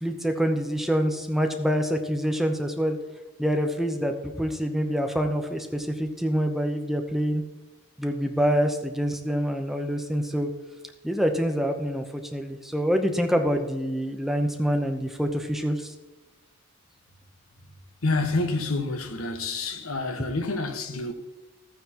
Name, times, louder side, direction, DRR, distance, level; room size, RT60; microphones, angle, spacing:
voice 1, 0.0-3.0 3.4-7.4 8.0-10.5 11.0-12.0 12.3-15.9, equal, ahead, 0.7 m, -26 dB
voice 2, 18.0-21.1, left 3 dB, 85° left, 1.3 m, -28 dB
14.5 x 9.1 x 2.9 m
head